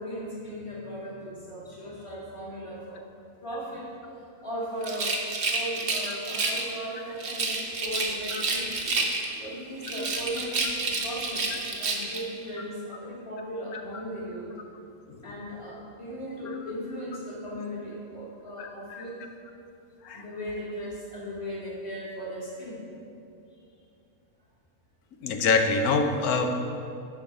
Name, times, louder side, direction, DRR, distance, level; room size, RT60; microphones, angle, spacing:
voice 1, 0.0-3.0 3.4-3.9 4.4-5.1 5.5-14.5 15.2-19.2 20.1-22.9, equal, 20° left, -6 dB, 2.0 m, -37 dB
Rattle, 4.8-6.7 7.2-9.4 9.8-12.3, right 3 dB, 50° right, 1.2 m, -29 dB
voice 2, 18.6-19.0 20.0-20.2 25.2-26.6, left 4 dB, 85° left, 5 dB, 1.3 m, -26 dB
10.0 x 4.7 x 6.0 m, 2.6 s
omnidirectional pair, 1.5 m